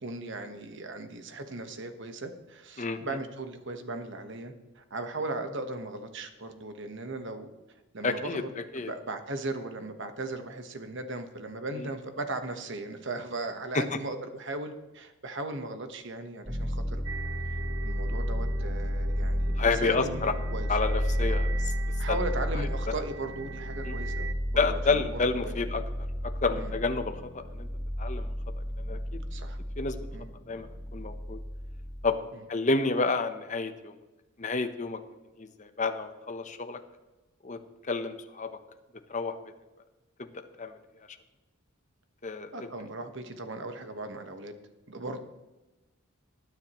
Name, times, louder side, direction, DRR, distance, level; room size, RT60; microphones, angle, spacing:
voice 1, 0.0-7.5 7.9-8.5 8.7-17.0 17.8-20.7 21.2-21.4 22.0-25.6 26.5-26.7 29.3-29.6 30.1-30.3 42.5-44.5 44.9-45.2, right 2 dB, 60° right, 7 dB, 1.2 m, -37 dB
voice 2, 8.0-8.4 8.7-8.9 11.8-11.9 13.7-14.0 19.6-20.3 20.7-21.7 22.1-22.2 23.9-24.0 24.6-25.8 26.4-27.7 28.0-28.3 28.8-29.2 29.8-30.0 30.5-31.4 32.0-32.2 32.5-33.9 34.4-35.0 35.4-36.8 37.4-37.6 37.9-38.5 39.1-39.4 40.2-40.7 42.2-42.5, left 3 dB, 35° left, 7 dB, 0.8 m, -29 dB
sound 1, 16.5-32.1, equal, ahead, 3.1 m, -32 dB
sound 2, 17.0-24.3, right 5 dB, 80° right, 0.9 m, -43 dB
20.0 x 9.5 x 3.0 m, 1.1 s
head